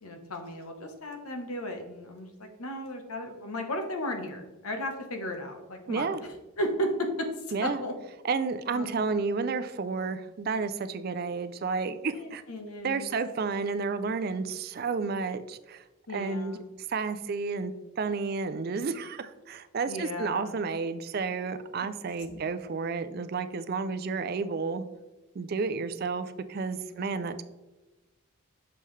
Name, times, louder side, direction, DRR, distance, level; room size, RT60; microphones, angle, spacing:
voice 1, 0.0-6.1 6.6-7.3 7.6-7.9 8.7-8.9 12.1-13.1 16.1-16.6 19.9-20.6 22.3-22.4 27.0-27.3, equal, 90° left, 5 dB, 1.0 m, -35 dB
voice 2, 5.9-6.2 7.5-7.8 8.2-12.4 12.8-15.8 16.1-16.6 16.9-24.8 25.4-27.4, right 4 dB, 45° right, 12 dB, 0.3 m, -31 dB
6.7 x 5.5 x 3.2 m, 1.1 s
head